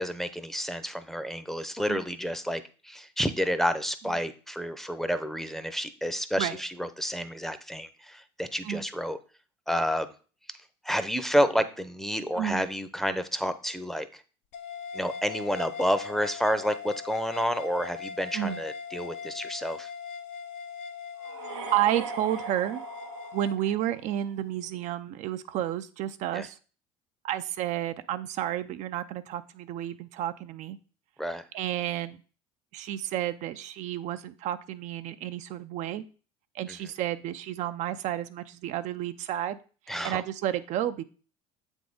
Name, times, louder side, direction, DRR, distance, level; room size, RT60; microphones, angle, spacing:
voice 1, 0.0-9.2 9.7-10.1 10.8-14.2 14.9-19.9 26.3-26.5 31.2-31.4 36.7-36.8 39.9-40.2, equal, ahead, 11 dB, 0.6 m, -30 dB
sound 1, 14.5-23.6, left 6 dB, 65° left, 0.6 m, -40 dB
sound 2, 21.2-24.2, right 5 dB, 90° right, 0.7 m, -40 dB
voice 2, 21.7-22.8 23.3-26.6 27.2-30.8 31.5-32.2 32.7-36.0 36.5-39.6 39.9-41.0, right 12 dB, 55° right, 11 dB, 0.4 m, -31 dB
7.5 x 3.6 x 3.9 m, 0.38 s
hypercardioid pair, 80°, 14 cm